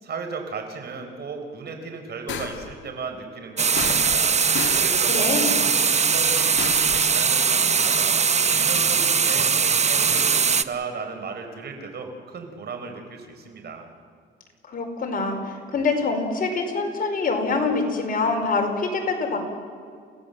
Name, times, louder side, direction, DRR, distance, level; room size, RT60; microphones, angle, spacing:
voice 1, 0.0-13.9, right 4 dB, 55° right, 4 dB, 4.3 m, -36 dB
sound 1, 2.3-2.7 3.8-4.3 4.6-5.0 6.6-7.0, left 8 dB, 70° left, 1.9 m, -32 dB
sound 2, 3.6-10.6, right 6 dB, 35° right, 0.9 m, -20 dB
voice 2, 5.1-5.5 14.7-19.4, left 3 dB, 45° left, 3 dB, 4.9 m, -25 dB
29.0 x 16.5 x 7.7 m, 2.2 s
cardioid pair, 90°, 20 cm